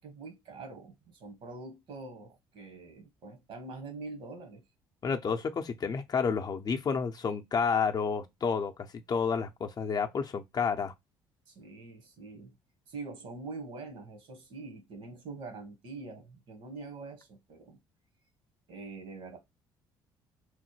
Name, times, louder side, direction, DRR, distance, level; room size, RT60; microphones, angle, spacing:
voice 1, 0.0-4.6 11.5-12.5 12.9-17.8 18.7-19.4, right 3 dB, 60° right, 1.2 m, -44 dB
voice 2, 5.0-8.7 9.1-10.9, left 5 dB, 40° left, 0.6 m, -30 dB
3.1 x 2.1 x 3.0 m
hypercardioid pair, 65°, 10 cm